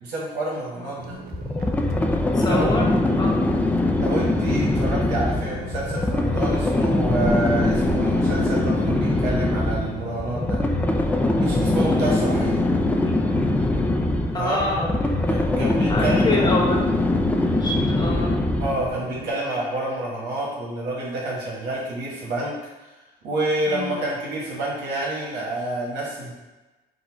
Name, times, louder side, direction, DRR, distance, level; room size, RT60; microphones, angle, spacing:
voice 1, 0.0-1.2 2.5-2.8 3.9-10.6 11.4-12.6 14.3-14.7 15.3-16.5 18.6-22.6 23.2-26.3, right 1 dB, 90° right, -4 dB, 1.4 m, -28 dB
voice 2, 0.8-1.2 2.3-3.4 13.0-13.1 14.3-15.0 15.9-17.1 17.4-18.4 23.7-24.0, left 2 dB, 25° left, -1 dB, 0.9 m, -27 dB
sound 1, 1.0-19.3, right 4 dB, 65° right, 0.5 m, -38 dB
sound 2, 1.3-18.9, left 2 dB, 10° left, 0.3 m, -22 dB
sound 3, 5.0-6.2 6.5-8.2 8.5-10.9, equal, 80° left, 1.0 m, -42 dB
4.1 x 2.3 x 4.6 m, 1.1 s
cardioid pair, 110°, 17 cm